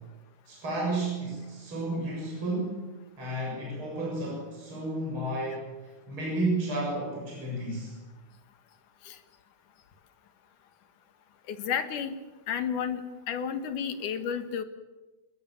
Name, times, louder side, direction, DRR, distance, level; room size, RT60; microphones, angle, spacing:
voice 1, 0.5-2.9 3.2-5.7 6.1-7.9, right 2 dB, 40° right, -2 dB, 8.0 m, -32 dB
voice 2, 11.5-12.2 12.5-14.6, left 7 dB, 85° left, 9 dB, 3.2 m, -32 dB
28.0 x 20.5 x 7.4 m, 1.1 s
omnidirectional pair, 3.5 m